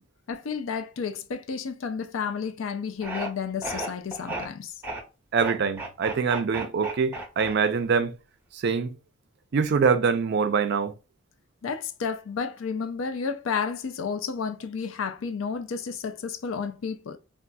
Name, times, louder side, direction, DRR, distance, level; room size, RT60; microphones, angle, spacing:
voice 1, 0.3-4.8 11.6-17.2, left 6 dB, 85° left, 0.4 m, -31 dB
sound 1, 3.0-3.3 3.6-4.5 4.8-5.0 5.3-7.9, right 2 dB, 10° right, 1.0 m, -34 dB
voice 2, 5.3-8.1 8.5-8.9 9.5-10.9, right 5 dB, 60° right, 0.4 m, -24 dB
3.9 x 2.4 x 2.3 m
head